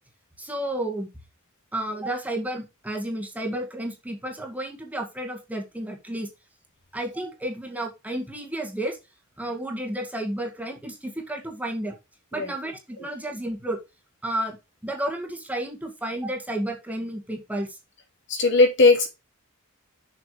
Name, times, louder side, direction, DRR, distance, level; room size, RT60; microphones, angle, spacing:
voice 1, 0.4-1.1 1.7-6.3 6.9-9.0 9.4-12.0 12.3-13.8 14.2-14.6 14.8-17.8, right 1 dB, 5° right, 1 dB, 1.9 m, -31 dB
voice 2, 18.3-19.1, left 3 dB, 60° left, 3 dB, 2.5 m, -18 dB
7.3 x 5.8 x 4.9 m, 0.26 s
head